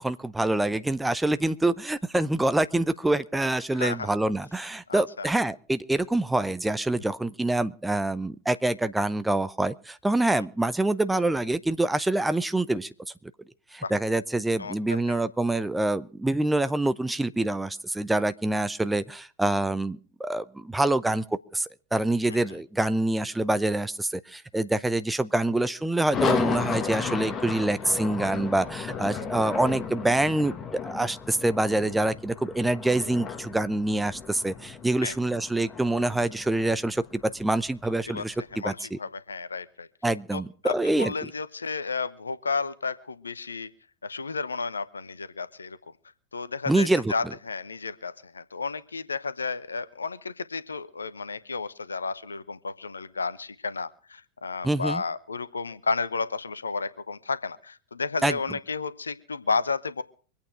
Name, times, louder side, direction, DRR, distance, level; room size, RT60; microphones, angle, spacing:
voice 1, 0.0-12.9 13.7-38.3 38.6-39.0 40.0-41.1 46.7-47.1 54.6-55.0 58.2-58.3, right 2 dB, 5° right, 13 dB, 0.7 m, -26 dB
voice 2, 3.7-4.1 4.9-5.3 13.8-13.9 14.6-15.2 35.0-35.2 38.1-38.2 38.5-39.9 40.3-43.7 44.0-45.8 46.3-60.0, left 4 dB, 75° left, 16 dB, 0.9 m, -32 dB
sound 1, 26.1-38.3, left 6 dB, 25° left, 1.7 m, -34 dB
24.5 x 8.8 x 4.7 m, 0.40 s
figure-of-eight pair, 90°, 0 cm